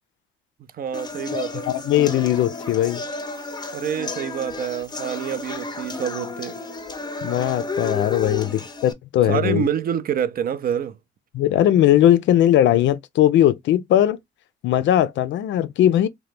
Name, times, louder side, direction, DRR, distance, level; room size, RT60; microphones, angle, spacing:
voice 1, 0.7-1.7 3.7-6.6 9.2-11.0, right 9 dB, 50° right, 0.4 m, -27 dB
sound 1, 0.9-8.9, left 3 dB, 20° left, 0.6 m, -32 dB
voice 2, 1.7-3.0 7.2-9.6 11.3-14.2 14.6-16.1, left 12 dB, 70° left, 0.4 m, -19 dB
2.9 x 2.1 x 3.3 m
cardioid pair, 90°, 20 cm